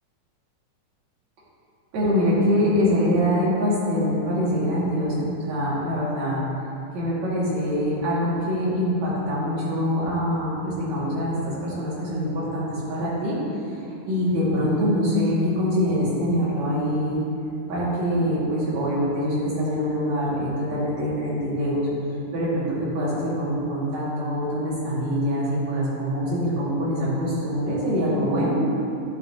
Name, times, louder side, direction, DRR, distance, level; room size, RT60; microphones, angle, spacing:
voice 1, 1.9-6.4 6.9-13.4 13.6-13.8 14.0-17.2 17.7-21.9 22.3-22.7 22.9-28.6, equal, 60° right, -8 dB, 3.3 m, -24 dB
11.5 x 9.0 x 2.9 m, 2.7 s
omnidirectional pair, 3.6 m